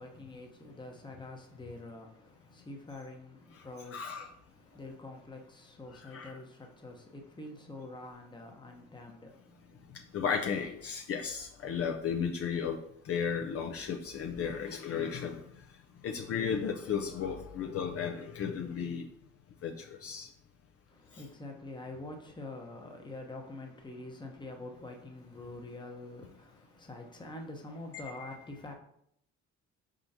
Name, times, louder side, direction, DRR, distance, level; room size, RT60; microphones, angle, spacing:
voice 1, 0.0-10.2 20.9-28.7, left 2 dB, 15° left, 0.8 m, -46 dB
voice 2, 3.9-4.3 5.9-6.4 10.1-15.4 16.0-19.1 19.6-20.3 28.2-28.3, left 7 dB, 50° left, 0.5 m, -34 dB
4.4 x 3.7 x 2.7 m
cardioid pair, 90°, 30 cm